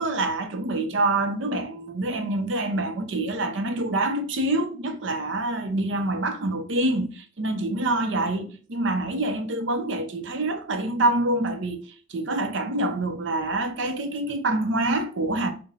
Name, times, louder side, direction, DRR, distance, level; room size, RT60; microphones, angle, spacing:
voice 1, 0.0-11.8 12.1-15.5, right 2 dB, 65° right, 0.6 m, -26 dB
5.5 x 2.2 x 2.5 m
head